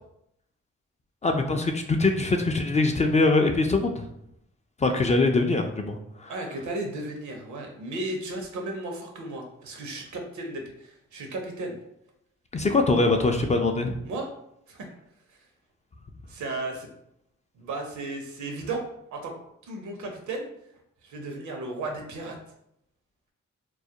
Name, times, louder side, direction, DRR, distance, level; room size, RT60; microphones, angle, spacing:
voice 1, 1.2-4.1 4.8-6.3 12.5-14.0, left 3 dB, 25° left, 4 dB, 0.3 m, -23 dB
voice 2, 6.3-11.8 14.0-14.3 14.7-14.9 15.3-15.4 16.3-16.9 17.5-18.8 19.1-19.3 19.6-20.5 21.0-22.4, right 2 dB, 75° right, 2 dB, 0.7 m, -34 dB
2.3 x 2.0 x 2.8 m, 0.77 s
supercardioid pair, 50°, 30 cm